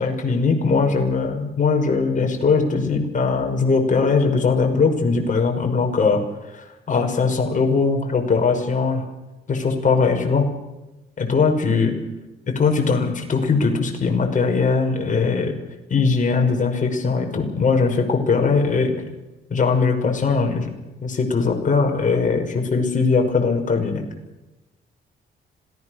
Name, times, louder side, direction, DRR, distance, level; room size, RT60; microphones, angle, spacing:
voice 1, 0.0-6.2 6.5-9.1 9.5-10.5 11.2-11.9 12.5-15.5 15.9-19.1 19.5-20.7 21.0-24.0, left 4 dB, 40° left, 2 dB, 6.0 m, -20 dB
26.5 x 19.0 x 6.7 m, 1.0 s
cardioid pair, 90°, 20 cm